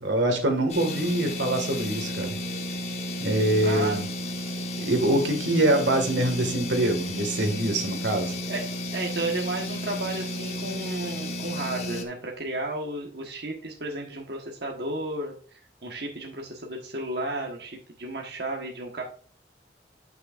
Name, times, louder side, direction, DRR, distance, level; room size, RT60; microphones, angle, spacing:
voice 1, 0.0-2.4 3.2-4.1 4.8-8.4, right 1 dB, 90° right, 5 dB, 1.8 m, -24 dB
sound 1, 0.7-12.0, equal, 35° left, 1.2 m, -33 dB
voice 2, 3.6-4.0 8.5-8.6 8.9-19.0, right 2 dB, 65° right, 0 dB, 1.3 m, -33 dB
11.0 x 6.2 x 2.5 m, 0.44 s
head